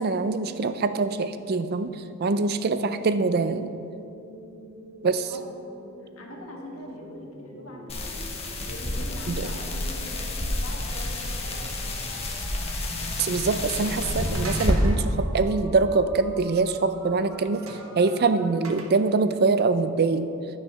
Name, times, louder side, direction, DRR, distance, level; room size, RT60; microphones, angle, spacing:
voice 1, 0.0-1.9 2.2-3.7 5.0-5.3 9.3-9.5 13.2-17.6 17.9-20.2, right 4 dB, 50° right, 11 dB, 0.5 m, -24 dB
sound 1, 3.4-18.4, equal, 25° right, 2.2 m, -46 dB
voice 2, 6.2-12.1, left 1 dB, 75° left, -1 dB, 1.8 m, -43 dB
sound 2, 7.9-14.7, left 1 dB, 30° left, 1.2 m, -30 dB
sound 3, 13.8-15.0 17.7-18.9, right 3 dB, 75° right, 1.1 m, -41 dB
11.5 x 6.4 x 5.8 m, 2.8 s
head